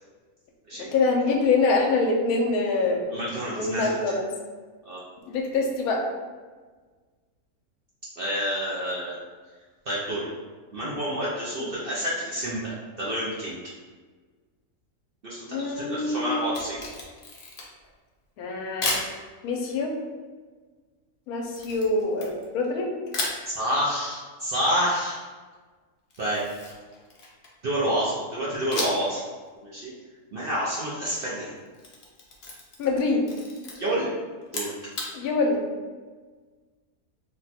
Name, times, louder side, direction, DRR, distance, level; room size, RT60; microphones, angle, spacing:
voice 1, 0.7-3.0 3.5-4.3 5.3-6.0 11.6-11.8 15.5-16.5 18.4-19.0 19.4-19.9 21.3-22.9 28.7-28.8 32.8-33.3 35.1-35.6, left 3 dB, 80° left, 1 dB, 1.1 m, -25 dB
voice 2, 3.1-4.2 4.8-5.0 8.2-9.2 9.9-10.3 10.7-13.6 15.2-16.8 23.6-25.2 26.2-26.4 27.6-29.2 29.6-29.9 30.3-31.5 33.8-34.1 34.5-34.7, equal, 60° right, -6 dB, 0.6 m, -28 dB
Camera, 16.4-17.9 18.8-19.1 21.6-22.7 23.1-23.4 26.1-27.6 28.7-29.2 29.5-29.6 31.6-33.0 33.2-33.7 34.4-35.1, left 2 dB, 50° left, 0.7 m, -33 dB
2.9 x 2.2 x 4.1 m, 1.4 s
omnidirectional pair, 1.5 m